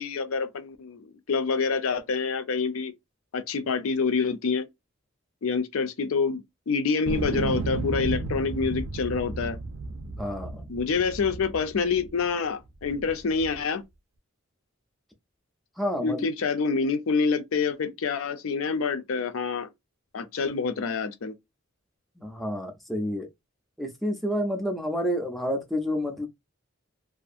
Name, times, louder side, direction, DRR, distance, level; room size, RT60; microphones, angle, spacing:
voice 1, 0.0-2.9 3.3-4.7 5.4-9.6 10.7-13.8 16.0-19.7 20.1-21.3, left 5 dB, 85° left, 0.5 m, -27 dB
sound 1, 7.1-12.3 12.8-13.6, right 3 dB, 85° right, 0.5 m, -33 dB
voice 2, 10.1-10.7 15.8-16.3 22.2-23.3 23.8-26.3, equal, ahead, 0.4 m, -29 dB
2.6 x 2.4 x 2.5 m
head